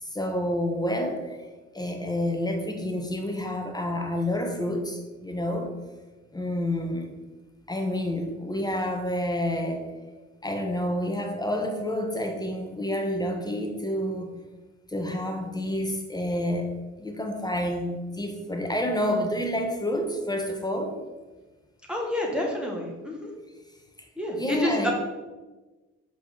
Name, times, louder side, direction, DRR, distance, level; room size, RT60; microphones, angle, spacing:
voice 1, 0.0-1.4 1.7-5.8 6.3-7.1 7.7-9.9 10.4-14.3 14.9-16.7 17.0-21.0 24.3-24.9, left 1 dB, 15° left, 3 dB, 0.9 m, -29 dB
voice 2, 21.9-23.3 24.2-24.9, left 1 dB, 5° right, -2 dB, 1.4 m, -29 dB
5.8 x 5.1 x 4.4 m, 1.2 s
cardioid pair, 90°, 30 cm